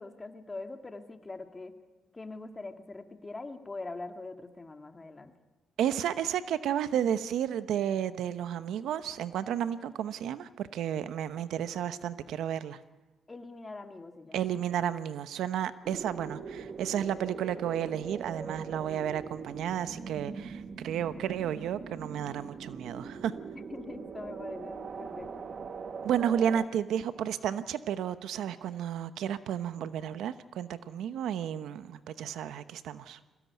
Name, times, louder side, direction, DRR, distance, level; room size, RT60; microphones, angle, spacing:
voice 1, 0.0-1.7 2.1-5.3 13.3-14.4 23.7-25.5, left 3 dB, 25° left, 6 dB, 2.0 m, -43 dB
voice 2, 5.8-12.8 14.3-23.3 26.0-33.2, right 9 dB, 80° right, 12 dB, 0.9 m, -32 dB
sound 1, 15.8-26.7, right 5 dB, 50° right, 1.6 m, -41 dB
22.5 x 17.5 x 9.5 m, 1.2 s
cardioid pair, 90°, 0 cm